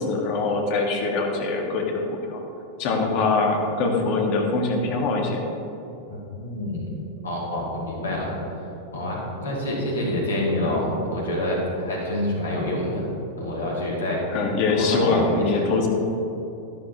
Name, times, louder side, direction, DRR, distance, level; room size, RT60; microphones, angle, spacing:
voice 1, 0.0-2.0 2.3-2.4 2.8-5.4 10.6-10.8 14.3-15.9, left 3 dB, 45° left, 1 dB, 1.6 m, -23 dB
voice 2, 6.1-6.9 7.2-8.3 8.9-13.0 13.4-14.2 14.8-15.6, left 1 dB, 70° left, -3 dB, 2.5 m, -27 dB
11.5 x 11.5 x 2.9 m, 2.9 s
figure-of-eight pair, 90°, 0 cm